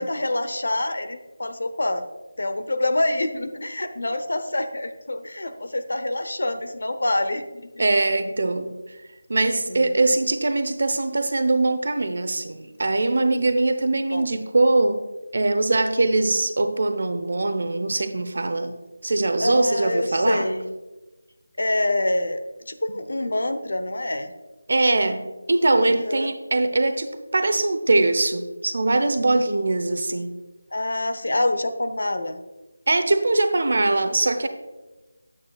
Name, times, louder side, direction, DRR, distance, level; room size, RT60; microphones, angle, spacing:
voice 1, 0.0-2.1 2.4-7.9 9.4-10.0 14.1-14.4 19.4-20.7 21.6-22.4 22.7-24.3 25.8-26.3 30.7-32.4, left 1 dB, 70° left, 8 dB, 0.7 m, -26 dB
voice 2, 7.8-9.0 9.3-15.0 15.3-18.8 19.0-20.5 24.7-30.3 32.9-34.5, right 2 dB, 55° right, 9 dB, 0.8 m, -22 dB
9.6 x 8.3 x 2.3 m, 1.1 s
figure-of-eight pair, 170°, 0 cm